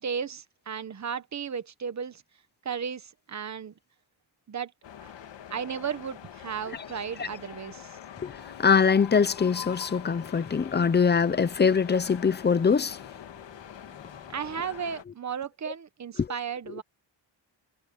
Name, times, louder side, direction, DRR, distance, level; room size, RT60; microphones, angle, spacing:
voice 1, 0.0-2.2 2.6-3.7 4.5-4.7 5.5-8.0 14.3-16.8, right 7 dB, 35° right, 1.2 m, -34 dB
sound 1, 4.8-15.0, left 10 dB, 70° left, 2.0 m, -44 dB
voice 2, 8.2-13.0 16.2-16.3, left 6 dB, 25° left, 0.6 m, -23 dB
wide cardioid pair, 180°, 46 cm